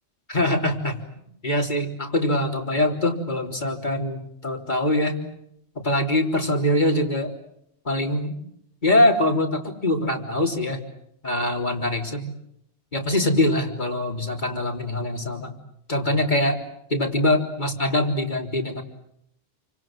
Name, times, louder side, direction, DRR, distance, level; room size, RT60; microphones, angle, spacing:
voice 1, 0.3-1.0 1.4-5.2 5.8-7.3 7.9-8.4 8.8-10.8 11.2-12.3 12.9-15.5 15.9-16.6 16.9-18.8, left 1 dB, 40° left, 3 dB, 3.8 m, -23 dB
29.0 x 25.5 x 7.6 m, 0.76 s
omnidirectional pair, 1.2 m